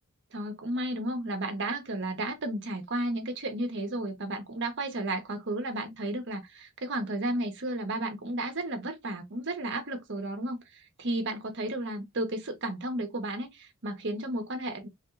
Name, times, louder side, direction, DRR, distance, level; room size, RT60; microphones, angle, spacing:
voice 1, 0.3-14.9, right 1 dB, 55° right, 1.1 m, -33 dB
3.6 x 3.5 x 2.5 m
head